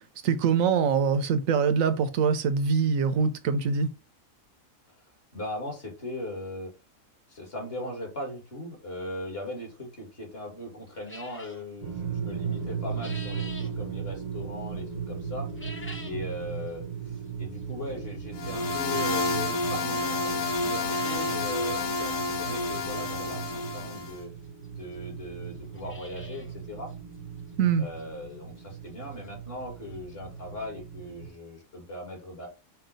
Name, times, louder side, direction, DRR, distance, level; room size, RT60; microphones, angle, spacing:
voice 1, 0.2-3.9 27.6-27.9, right 6 dB, 75° right, 1.1 m, -24 dB
voice 2, 5.0-6.7 7.3-15.5 16.0-24.3 24.8-26.9 27.8-32.5, left 1 dB, 45° left, 2.0 m, -39 dB
sound 1, 11.1-11.6 12.6-13.7 15.4-16.3 16.7-16.8 17.6-17.7 19.4-19.5 19.9-20.0 20.3-20.4 20.6-21.4 21.8-21.9 22.1-22.2 23.8-23.9 24.6-24.7 24.9-25.0 25.5-26.5 26.9-27.0 27.5-27.6 28.0-28.1 29.8-29.9 30.1-30.2 30.6-30.7, left 2 dB, 15° left, 0.4 m, -45 dB
sound 2, 11.8-31.3, right 6 dB, 45° right, 0.7 m, -37 dB
sound 3, 18.4-24.2, left 3 dB, 80° left, 1.1 m, -29 dB
5.5 x 2.4 x 3.9 m
omnidirectional pair, 1.4 m